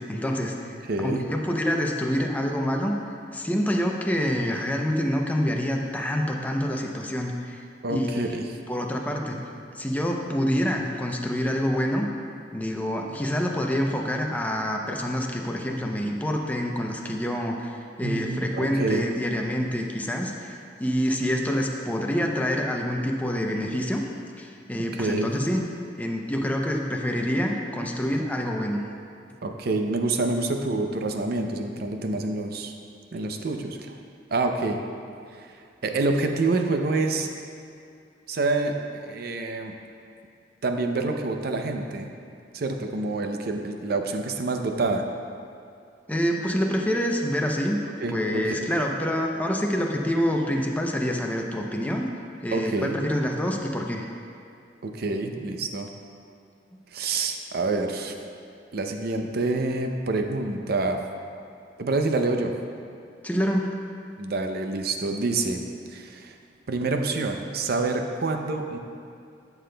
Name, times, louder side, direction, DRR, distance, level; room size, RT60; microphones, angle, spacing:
voice 1, 0.0-2.9 3.3-7.6 7.9-8.4 8.7-9.4 9.7-12.1 12.5-20.5 20.8-24.0 24.4-25.6 26.0-28.8 46.1-47.8 48.1-52.1 52.4-54.0 63.2-63.7, equal, 10° left, 1 dB, 0.6 m, -26 dB
voice 2, 0.9-1.2 7.8-8.4 18.0-19.0 24.9-25.3 29.4-32.7 33.1-34.0 34.3-34.8 35.3-37.3 38.3-39.7 40.6-42.1 42.5-45.0 48.0-48.4 52.5-53.0 54.8-55.9 56.9-58.2 58.7-61.0 61.8-62.5 64.2-65.6 65.9-66.4 66.7-68.8, right 3 dB, 60° right, 4 dB, 0.6 m, -27 dB
11.0 x 6.9 x 2.2 m, 2.4 s
head